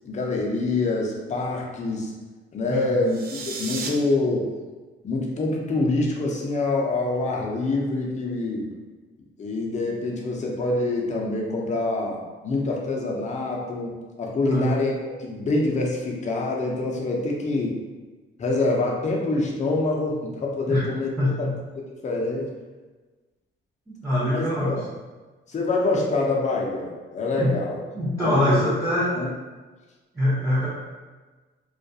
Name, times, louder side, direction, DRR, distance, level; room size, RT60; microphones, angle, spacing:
voice 1, 0.0-2.1 2.5-4.5 5.0-8.7 9.4-17.8 18.4-21.1 21.4-21.5 22.0-22.5 24.2-24.9 25.5-27.8 28.2-28.6 29.2-29.3, left 2 dB, 35° left, -2 dB, 0.5 m, -26 dB
sound 1, 3.0-3.9, right 4 dB, 45° right, 0.4 m, -33 dB
voice 2, 21.2-21.5 23.9-24.8 27.3-27.5 27.9-29.1 30.1-30.7, left 1 dB, 5° right, -10 dB, 0.8 m, -23 dB
2.3 x 2.2 x 2.6 m, 1.3 s
cardioid pair, 105°, 21 cm